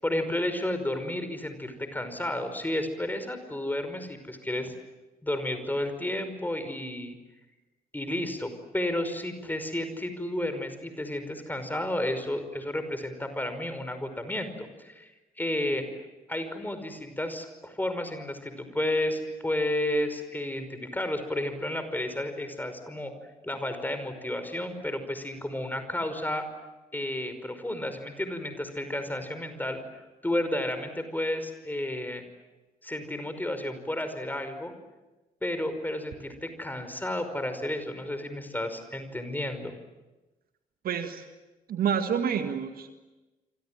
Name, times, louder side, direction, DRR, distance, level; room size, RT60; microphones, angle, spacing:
voice 1, 0.0-4.7 5.2-7.2 7.9-15.9 16.3-23.1 23.4-26.5 26.9-29.8 30.2-32.2 32.8-34.7 35.4-39.7, left 1 dB, 10° left, 9 dB, 5.4 m, -32 dB
voice 2, 40.8-41.2 41.7-42.9, right 7 dB, 50° right, 8 dB, 1.8 m, -28 dB
28.5 x 26.0 x 7.7 m, 1.1 s
figure-of-eight pair, 40°, 19 cm